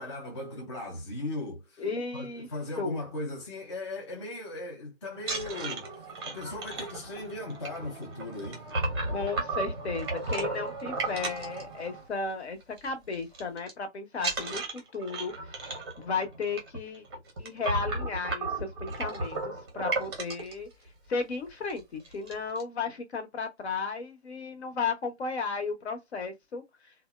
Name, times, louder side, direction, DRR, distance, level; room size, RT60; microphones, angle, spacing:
voice 1, 0.0-1.8 2.1-8.6, left 2 dB, 25° left, 0.5 m, -38 dB
voice 2, 1.8-2.5 2.8-3.0 9.1-15.3 15.6-17.0 17.4-20.7 21.1-26.6, left 4 dB, 65° left, 0.9 m, -34 dB
sound 1, 5.2-12.3 12.6-12.9 13.1-13.7 14.2-20.5 21.2-21.3 21.6-21.8 22.0-22.6, right 3 dB, 20° right, 0.6 m, -34 dB
2.7 x 2.1 x 2.2 m
hypercardioid pair, 150°, 36 cm